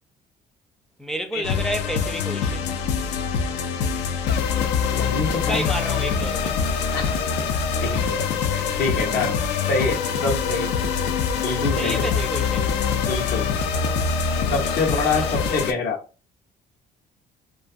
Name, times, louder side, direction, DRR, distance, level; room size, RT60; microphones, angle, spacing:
voice 1, 1.0-2.7 5.3-6.6 11.8-12.7 14.6-14.8 15.1-15.6, right 1 dB, ahead, 0.3 m, -31 dB
sound 1, 1.4-15.7, left 6 dB, 90° left, 0.4 m, -24 dB
voice 2, 4.9-5.6 6.9-7.2 7.8-9.4 9.6-10.7 11.3-12.1 12.9-13.5 14.4-16.0, left 3 dB, 70° left, 0.9 m, -26 dB
2.5 x 2.5 x 2.3 m
cardioid pair, 110°, 17 cm